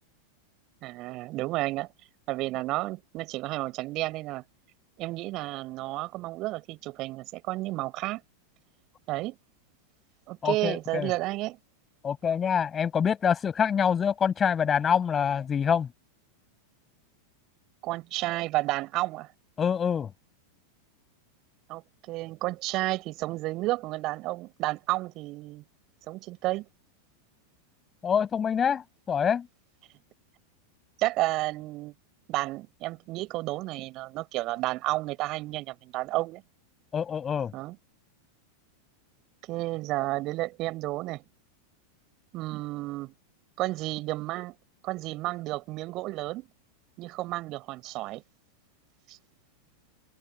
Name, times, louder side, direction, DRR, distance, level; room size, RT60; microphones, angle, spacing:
voice 1, 0.8-1.9 2.3-4.4 5.0-8.2 9.1-9.4 10.3-11.6 17.8-19.3 21.7-25.6 26.1-26.7 31.0-31.9 32.3-36.4 37.5-37.8 39.5-41.2 42.3-43.1 43.6-44.6 44.8-46.5 47.0-48.2 49.1-49.2, right 19 dB, 40° right, 5.2 m, -31 dB
voice 2, 10.4-11.1 12.0-15.9 19.6-20.1 28.0-29.5 36.9-37.5, left 7 dB, 20° left, 7.4 m, -26 dB
figure-of-eight pair, 90°, 0 cm